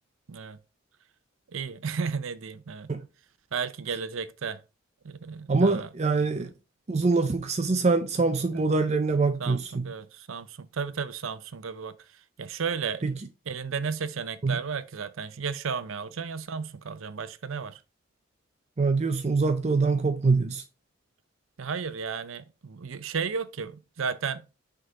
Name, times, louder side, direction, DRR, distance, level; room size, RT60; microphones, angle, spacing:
voice 1, 1.5-2.9 3.5-4.6 5.0-5.9 6.4-6.5 8.5-8.6 9.4-13.0 13.5-17.8 21.6-24.4, right 5 dB, 80° right, 0.6 m, -34 dB
voice 2, 5.5-6.5 6.9-9.9 13.0-13.1 14.4-14.5 18.8-20.6, right 3 dB, 30° right, 0.4 m, -24 dB
6.4 x 3.7 x 4.7 m
head